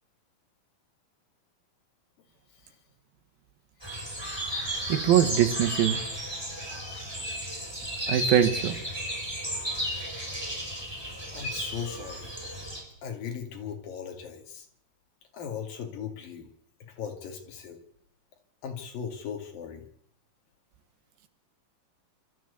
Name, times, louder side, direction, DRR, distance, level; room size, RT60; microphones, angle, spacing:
sound 1, 3.8-12.8, equal, 5° right, 5.2 m, -34 dB
voice 1, 4.9-6.0 7.8-8.8, right 10 dB, 85° right, 8 dB, 3.4 m, -23 dB
voice 2, 11.3-12.3 13.0-14.7 15.3-16.5 16.8-17.8 18.6-19.9, left 7 dB, 75° left, 4 dB, 4.1 m, -38 dB
25.5 x 13.5 x 8.3 m, 0.69 s
omnidirectional pair, 4.1 m